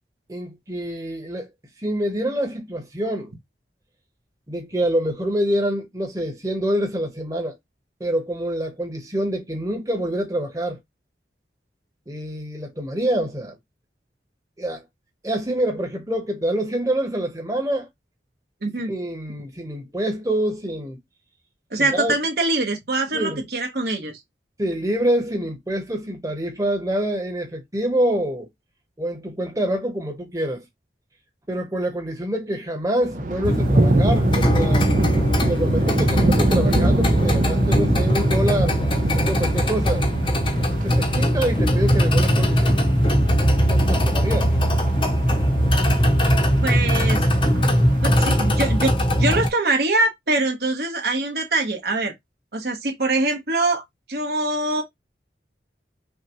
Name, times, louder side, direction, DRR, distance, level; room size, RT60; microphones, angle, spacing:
voice 1, 0.3-1.5 1.8-3.3 4.5-7.6 8.0-10.8 12.1-13.6 14.6-14.8 15.2-17.9 18.9-21.0 21.8-22.1 23.1-23.4 24.6-28.5 29.0-30.6 31.5-34.9 35.5-40.0 40.8-42.8 43.6-44.6, right 1 dB, 20° right, 1.0 m, -26 dB
voice 2, 18.6-18.9 21.7-24.2 46.6-47.2 48.0-52.1 52.5-53.8 54.1-54.8, right 2 dB, 60° right, 1.2 m, -23 dB
Thunder, 33.0-49.0, right 2 dB, 45° right, 0.5 m, -27 dB
sound 1, 33.4-49.5, equal, 30° left, 0.7 m, -20 dB
5.7 x 2.3 x 3.0 m
head